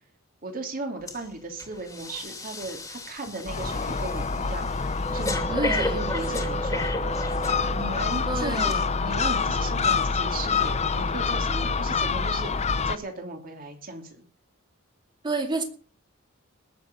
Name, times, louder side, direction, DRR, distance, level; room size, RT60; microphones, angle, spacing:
voice 1, 0.4-6.8 7.7-14.2, right 2 dB, 45° right, 3 dB, 3.2 m, -36 dB
Breathing, 1.1-1.3 1.6-8.0 8.6-8.7, equal, 15° left, 2.6 m, -33 dB
Gull seagull, 3.5-13.0, left 5 dB, 30° left, 0.7 m, -27 dB
voice 2, 5.5-6.1 8.3-8.9 15.2-15.6, right 2 dB, 20° right, 4 dB, 2.5 m, -30 dB
20.0 x 7.1 x 5.4 m, 0.41 s
head